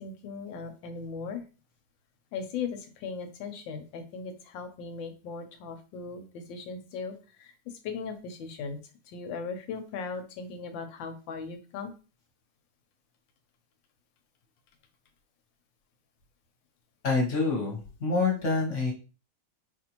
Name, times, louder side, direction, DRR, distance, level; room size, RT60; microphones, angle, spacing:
voice 1, 0.0-1.4 2.3-7.5 7.8-8.8 9.1-11.9, left 5 dB, 85° left, 7 dB, 1.4 m, -38 dB
voice 2, 17.0-18.9, left 3 dB, 45° left, 0 dB, 1.3 m, -27 dB
5.3 x 2.6 x 2.9 m, 0.34 s
omnidirectional pair, 2.0 m